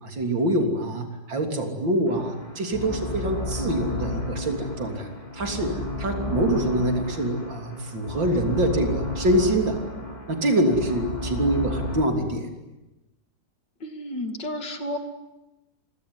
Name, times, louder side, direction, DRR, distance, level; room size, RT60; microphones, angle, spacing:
voice 1, 0.0-5.1 5.3-5.7 6.0-9.8 10.3-12.5, right 1 dB, 85° right, 4 dB, 4.0 m, -25 dB
sound 1, 2.1-12.1, left 1 dB, 20° left, 3.5 m, -33 dB
voice 2, 13.8-15.0, left 1 dB, 70° left, 6 dB, 3.0 m, -31 dB
27.0 x 22.5 x 9.7 m, 1.0 s
omnidirectional pair, 2.0 m